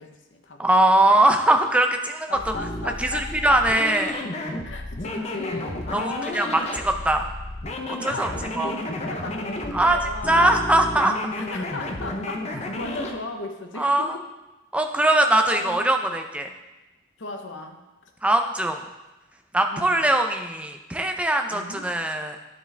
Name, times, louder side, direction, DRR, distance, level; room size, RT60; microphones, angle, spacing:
voice 1, 0.0-0.7 2.3-3.6 4.6-7.1 7.9-10.7 11.3-14.1 15.2-15.9 17.2-17.8 19.7-20.1 21.5-21.9, left 3 dB, 70° left, 4 dB, 0.8 m, -36 dB
voice 2, 0.6-2.3 3.0-4.2 5.9-7.2 8.0-8.3 8.6-8.7 9.7-10.0 10.3-11.1 13.8-14.2 14.7-16.5 18.2-18.8 19.5-22.4, right 1 dB, 5° right, 5 dB, 0.5 m, -21 dB
sound 1, 2.3-13.2, left 1 dB, 35° left, 0.7 m, -32 dB
12.0 x 4.7 x 3.3 m, 1.0 s
head